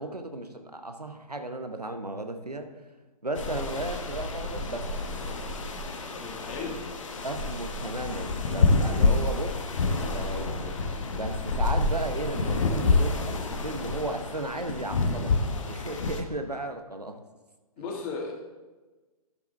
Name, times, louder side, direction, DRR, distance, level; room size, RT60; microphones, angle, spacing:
voice 1, 0.0-2.7 3.2-5.0 7.2-9.5 9.9-10.7 11.2-15.3 15.7-17.2, right 2 dB, 85° right, 7 dB, 1.0 m, -35 dB
sound 1, 3.4-16.2, left 3 dB, 55° left, 1.1 m, -28 dB
voice 2, 6.1-6.8 17.8-18.3, left 4 dB, 25° left, 0 dB, 1.8 m, -35 dB
12.0 x 6.9 x 3.4 m, 1.2 s
figure-of-eight pair, 125°, 20 cm